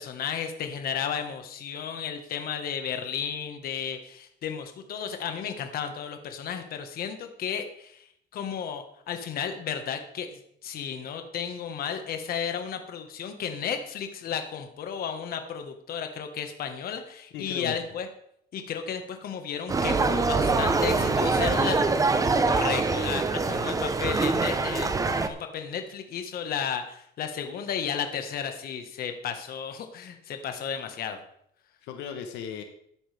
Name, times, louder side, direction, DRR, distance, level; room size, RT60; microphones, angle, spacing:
voice 1, 0.0-8.1 8.3-18.1 18.5-21.8 22.4-24.9 25.2-31.2, left 7 dB, 60° left, 6 dB, 1.5 m, -33 dB
voice 2, 17.3-17.8 20.9-21.9 31.8-32.6, left 7 dB, 90° left, 6 dB, 1.2 m, -37 dB
sound 1, 19.7-25.3, right 3 dB, 20° right, 0.9 m, -24 dB
13.5 x 10.0 x 3.5 m, 0.71 s
cardioid pair, 135°, 18 cm